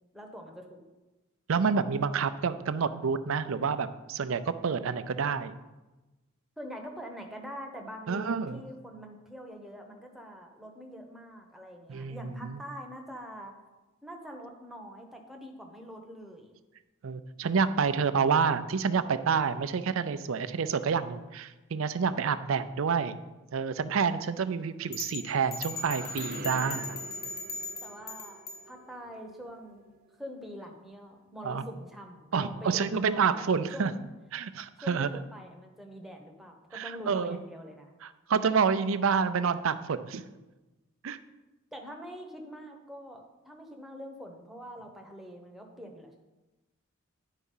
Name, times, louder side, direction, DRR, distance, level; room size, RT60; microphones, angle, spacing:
voice 1, 0.1-0.8 6.6-13.5 14.0-16.5 27.8-28.4 28.7-29.8 30.2-33.4 33.7-34.0 34.8-37.9 41.7-46.2, equal, ahead, 1 dB, 1.0 m, -44 dB
voice 2, 1.5-5.6 8.1-8.6 11.9-12.6 17.0-23.1 23.5-27.0 31.4-31.7 32.3-33.9 34.3-35.1 36.7-37.4 38.0-40.2 41.0-41.2, right 6 dB, 70° right, 12 dB, 0.5 m, -28 dB
sound 1, 24.9-28.6, left 3 dB, 40° left, 1.4 m, -38 dB
sound 2, 25.2-30.8, right 2 dB, 45° right, 0.8 m, -47 dB
10.0 x 4.7 x 5.5 m, 1.1 s
head